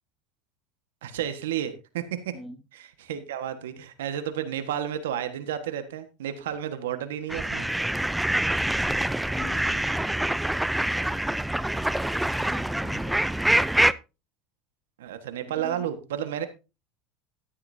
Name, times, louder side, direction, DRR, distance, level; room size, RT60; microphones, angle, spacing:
voice 1, 1.0-2.3 3.0-7.7 15.0-16.5, right 10 dB, 90° right, 9 dB, 1.5 m, -31 dB
sound 1, 7.3-13.9, right 1 dB, 5° right, 0.5 m, -25 dB
voice 2, 9.1-11.3 12.4-13.2 15.5-15.9, left 3 dB, 15° left, 3 dB, 2.2 m, -44 dB
13.0 x 10.5 x 2.8 m, 0.29 s
supercardioid pair, 100°, 0 cm